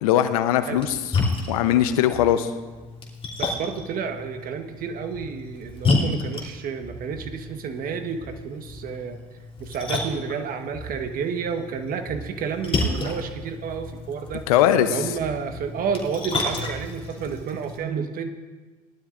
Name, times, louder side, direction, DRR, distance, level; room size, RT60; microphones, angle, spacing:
voice 1, 0.0-1.1 1.5-2.5 14.5-15.0, left 11 dB, 85° left, 11 dB, 0.8 m, -20 dB
Splash splatter, 0.7-17.8, left 3 dB, 30° left, 2.9 m, -31 dB
voice 2, 3.4-9.2 9.6-14.5 14.9-18.3, right 6 dB, 50° right, 7 dB, 1.3 m, -30 dB
19.0 x 12.0 x 2.5 m, 1.3 s
hypercardioid pair, 70°, 18 cm